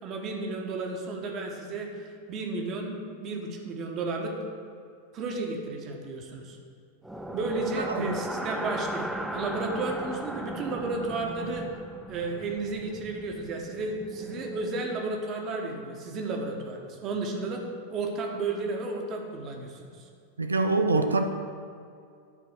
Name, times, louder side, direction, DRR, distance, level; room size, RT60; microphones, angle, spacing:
voice 1, 0.0-4.3 5.1-6.6 7.3-11.7 12.1-17.6 17.9-19.9, right 3 dB, 35° right, 2 dB, 1.3 m, -33 dB
sound 1, 7.0-15.1, right 1 dB, 5° right, 0.5 m, -37 dB
voice 2, 7.9-8.2 20.4-21.3, right 3 dB, 75° right, 7 dB, 0.5 m, -25 dB
11.0 x 4.0 x 6.4 m, 2.4 s
figure-of-eight pair, 90°, 0 cm